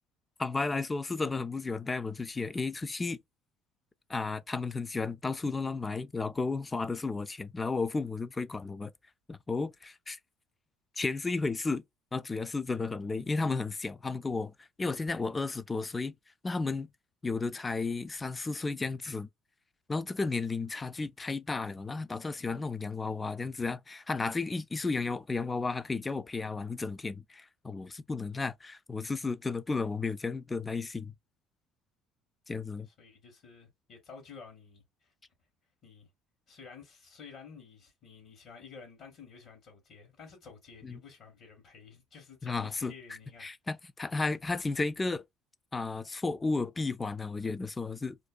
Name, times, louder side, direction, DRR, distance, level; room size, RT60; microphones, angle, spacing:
voice 1, 0.4-3.2 4.1-8.9 9.3-10.2 11.0-11.8 12.1-16.1 16.4-16.9 17.2-19.3 19.9-31.1 32.5-32.9 40.8-41.0 42.4-42.9 43.4-45.2 45.7-48.2, left 3 dB, 20° left, 0.3 m, -33 dB
voice 2, 32.9-35.1 35.8-36.1 36.5-43.5, left 5 dB, 60° left, 1.2 m, -51 dB
2.6 x 2.2 x 2.4 m
supercardioid pair, 80°, 0 cm